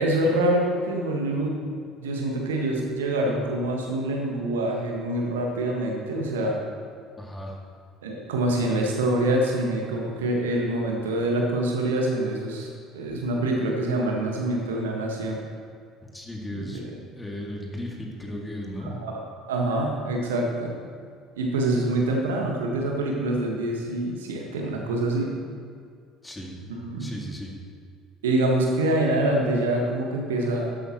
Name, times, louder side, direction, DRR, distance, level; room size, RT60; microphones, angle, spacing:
voice 1, 0.0-1.7 2.0-6.6 8.0-15.4 16.7-16.8 18.8-19.2 19.5-20.8 21.3-25.3 26.8-27.2 28.2-30.7, right 1 dB, 70° right, 0 dB, 1.5 m, -25 dB
voice 2, 7.2-7.6 16.1-18.9 26.2-26.6 27.0-27.6, left 1 dB, 10° left, -1 dB, 2.2 m, -36 dB
13.0 x 11.0 x 3.1 m, 2.2 s
figure-of-eight pair, 60°, 0 cm